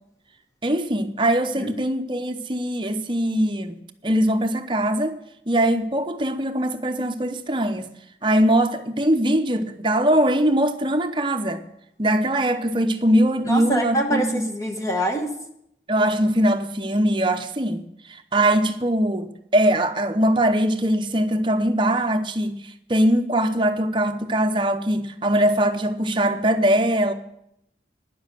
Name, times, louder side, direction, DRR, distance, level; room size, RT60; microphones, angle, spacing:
voice 1, 0.6-5.2 5.5-7.9 8.2-11.6 12.0-14.4 15.9-17.8 18.1-27.1, right 1 dB, 30° right, 0.8 m, -21 dB
voice 2, 13.4-15.3, right 1 dB, 20° left, 1.1 m, -24 dB
10.5 x 7.1 x 9.1 m
head